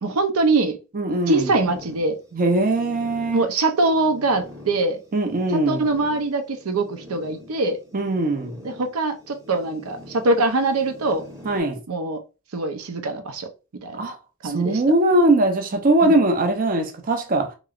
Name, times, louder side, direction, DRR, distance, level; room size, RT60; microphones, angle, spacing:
voice 1, 0.0-0.8 1.3-2.2 3.3-5.0 5.5-7.8 8.6-11.2 11.9-12.2 12.5-13.5 13.8-14.0 14.4-14.8 16.0-16.2, right 2 dB, 85° right, 0.6 m, -23 dB
voice 2, 0.9-1.5 2.3-3.5 5.1-5.8 7.9-8.6 11.4-11.8 14.0-14.2 14.4-17.5, right 2 dB, 40° right, 0.5 m, -20 dB
sound 1, 1.1-11.6, left 1 dB, 15° right, 0.8 m, -44 dB
3.0 x 2.9 x 2.4 m
head